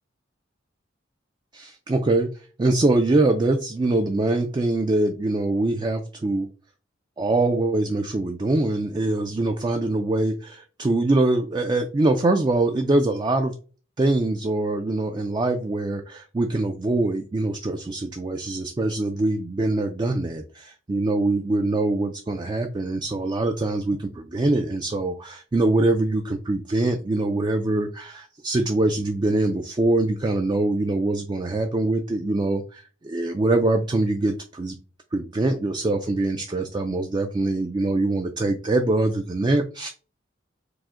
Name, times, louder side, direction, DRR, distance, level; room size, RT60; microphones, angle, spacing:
voice 1, 1.5-2.3 2.6-6.5 7.2-13.5 14.0-34.8 35.1-39.9, right 2 dB, 25° right, 5 dB, 0.4 m, -23 dB
4.8 x 2.1 x 3.6 m, 0.36 s
head